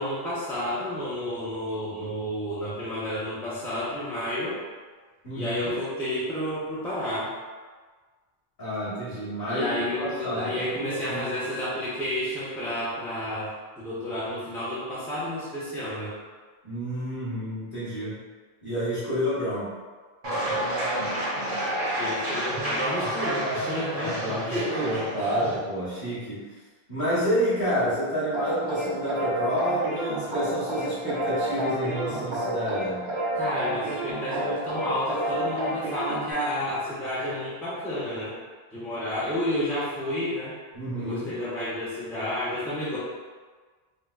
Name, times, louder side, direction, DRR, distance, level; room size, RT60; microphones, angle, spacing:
voice 1, 0.0-4.6 5.3-7.3 9.5-16.1 22.0-24.9 33.3-38.4 38.7-40.5 40.9-43.0, left 1 dB, ahead, -10 dB, 0.6 m, -31 dB
voice 2, 5.2-5.7 8.6-11.3 16.6-18.2 18.6-19.7 24.1-26.4 26.9-33.1 40.7-41.3, equal, 55° left, -13 dB, 1.5 m, -29 dB
sound 1, 20.2-25.6, right 1 dB, 55° right, 1.0 m, -29 dB
sound 2, 28.3-36.3, right 1 dB, 85° right, 1.1 m, -30 dB
4.6 x 2.2 x 2.3 m, 1.4 s
omnidirectional pair, 1.0 m